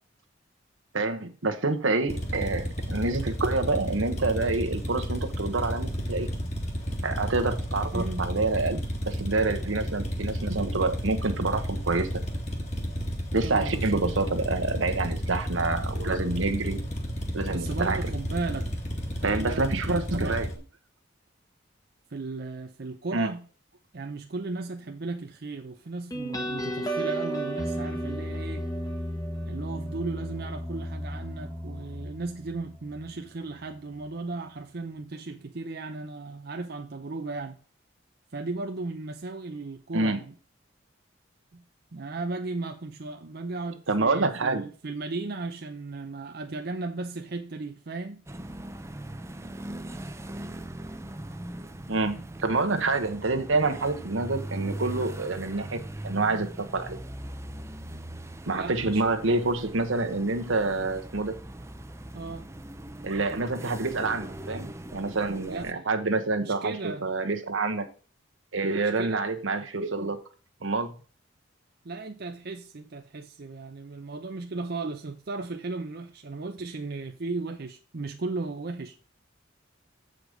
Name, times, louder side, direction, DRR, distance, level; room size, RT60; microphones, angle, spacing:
voice 1, 0.9-6.3 7.0-8.8 9.0-12.1 13.3-16.8 17.3-18.0 19.2-20.5 23.1-23.3 39.9-40.2 43.9-44.7 51.9-57.0 58.5-61.4 63.0-67.9 68.5-70.2 70.6-70.9, right 3 dB, 80° right, 1.1 m, -27 dB
sound 1, 2.1-20.6, equal, 35° left, 1.8 m, -32 dB
voice 2, 7.9-8.3 13.4-14.1 17.5-18.7 19.2-20.4 22.1-23.5 23.9-28.7 29.4-37.6 38.3-40.3 41.5-41.6 41.9-48.2 58.5-59.0 62.1-62.5 65.5-65.8 66.4-67.1 69.0-69.2 71.8-78.9, right 3 dB, 55° right, 0.6 m, -36 dB
sound 2, 26.1-33.3, right 1 dB, 20° left, 1.1 m, -33 dB
sound 3, 48.3-65.7, right 1 dB, 15° right, 0.6 m, -40 dB
8.0 x 5.0 x 5.1 m
head